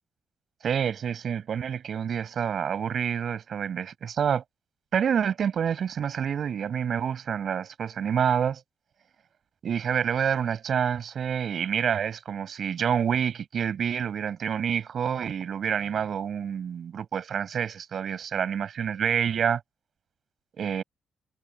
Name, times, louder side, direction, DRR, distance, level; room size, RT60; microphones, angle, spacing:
voice 1, 0.6-4.4 4.9-8.6 9.6-19.6 20.6-20.8, right 8 dB, 55° right, 6.1 m, -28 dB
cardioid pair, 120°, 0 cm